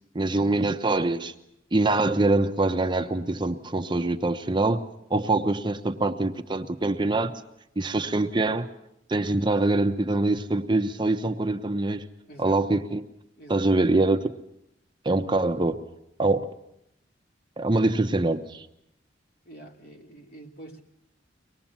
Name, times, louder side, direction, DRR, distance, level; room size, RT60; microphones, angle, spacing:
voice 1, 0.1-1.3 1.7-4.8 5.1-7.3 7.8-8.7 9.1-12.1 12.4-13.0 13.5-14.3 15.0-15.8 16.2-16.5 17.6-18.7, right 2 dB, 25° right, 0.8 m, -24 dB
voice 2, 12.3-12.6 13.4-13.7 19.4-20.8, right 1 dB, 55° left, 3.1 m, -46 dB
24.0 x 20.0 x 7.3 m
head